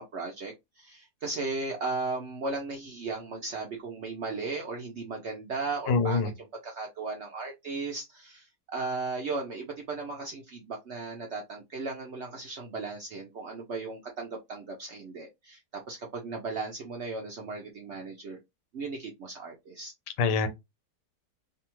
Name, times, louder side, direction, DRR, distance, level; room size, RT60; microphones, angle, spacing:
voice 1, 0.0-6.3 6.6-8.5 8.7-18.4 18.7-19.9, right 3 dB, 70° right, 0.6 m, -36 dB
voice 2, 5.9-6.3 20.2-20.5, left 4 dB, 90° left, 1.2 m, -24 dB
2.7 x 2.3 x 2.9 m
omnidirectional pair, 1.8 m